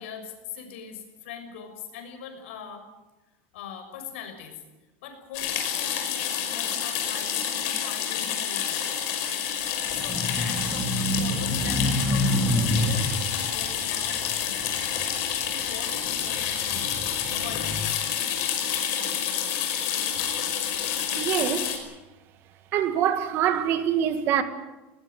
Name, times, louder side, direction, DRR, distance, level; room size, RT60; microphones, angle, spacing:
voice 1, 0.0-2.9 3.5-4.6 5.0-8.9 9.9-14.7 15.4-18.1, left 7 dB, 80° left, 6.2 m, -41 dB
sound 1, 5.3-21.8, left 9 dB, 50° left, 5.4 m, -28 dB
sound 2, 9.9-15.4 15.9-17.8, left 1 dB, 5° right, 3.4 m, -28 dB
voice 2, 21.2-21.7 22.7-24.4, right 9 dB, 35° right, 1.9 m, -24 dB
20.5 x 20.0 x 9.3 m
supercardioid pair, 170°, 6 cm